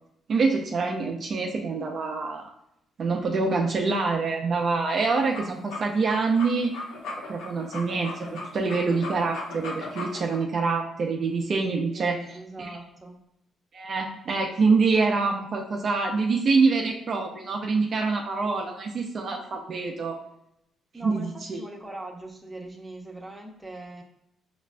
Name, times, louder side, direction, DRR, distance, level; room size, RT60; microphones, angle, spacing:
voice 1, 0.3-2.5 3.0-6.8 7.3-12.2 12.6-12.8 13.7-20.2 21.0-21.6, right 4 dB, 50° right, 1 dB, 0.4 m, -25 dB
sound 1, 4.9-10.4, left 3 dB, 90° left, 0.7 m, -37 dB
voice 2, 11.9-13.2 20.9-24.0, right 2 dB, 10° right, 0 dB, 0.7 m, -41 dB
5.1 x 2.4 x 2.2 m, 0.78 s
cardioid pair, 90°, 0 cm